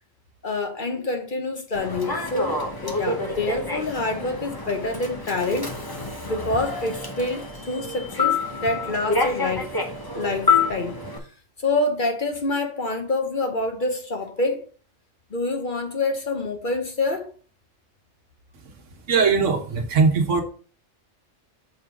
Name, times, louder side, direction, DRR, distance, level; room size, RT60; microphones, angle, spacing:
voice 1, 0.4-5.7 6.2-9.7 10.1-11.0 11.6-14.6 15.3-17.3, left 2 dB, 45° left, 1.1 m, -27 dB
Human voice / Subway metro underground, 1.7-11.2, left 4 dB, 20° left, 0.9 m, -27 dB
voice 2, 19.1-20.4, right 5 dB, 75° right, 1.4 m, -20 dB
6.8 x 3.7 x 4.6 m
omnidirectional pair, 1.3 m